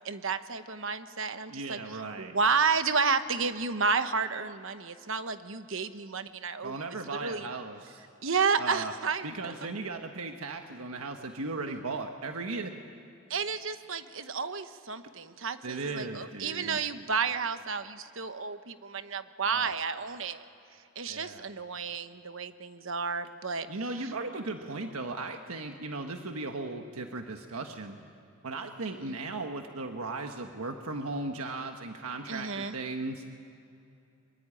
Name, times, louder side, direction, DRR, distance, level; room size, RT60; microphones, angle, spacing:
voice 1, 0.0-6.8 7.2-7.5 8.2-9.5 13.3-20.4 21.0-23.7 29.0-29.2 32.3-32.7, right 5 dB, 60° right, 10 dB, 1.1 m, -31 dB
voice 2, 1.5-2.4 6.6-8.0 8.6-8.9 9.2-12.7 15.6-16.8 19.4-19.8 21.1-21.5 23.7-28.0 28.4-33.2, right 3 dB, 80° right, 5 dB, 1.4 m, -37 dB
24.5 x 23.5 x 9.9 m, 2.7 s
head